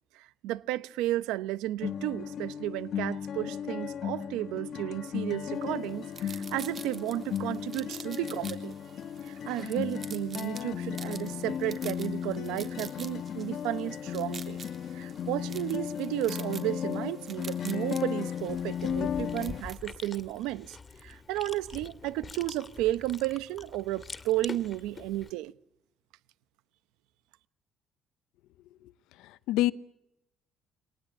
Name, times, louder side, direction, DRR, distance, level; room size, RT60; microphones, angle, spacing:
voice 1, 0.1-8.7 9.2-14.6 14.9-20.8 21.0-25.5, right 15 dB, 90° right, 0.9 m, -33 dB
sound 1, 1.8-19.6, left 8 dB, 60° left, 1.3 m, -35 dB
sound 2, 5.6-19.8, right 5 dB, 45° right, 3.5 m, -48 dB
Chewing mastication, 18.4-25.3, left 4 dB, 30° left, 2.1 m, -45 dB
voice 2, 29.2-29.7, left 16 dB, 85° left, 0.8 m, -27 dB
24.0 x 19.0 x 8.6 m
cardioid pair, 85°, 0 cm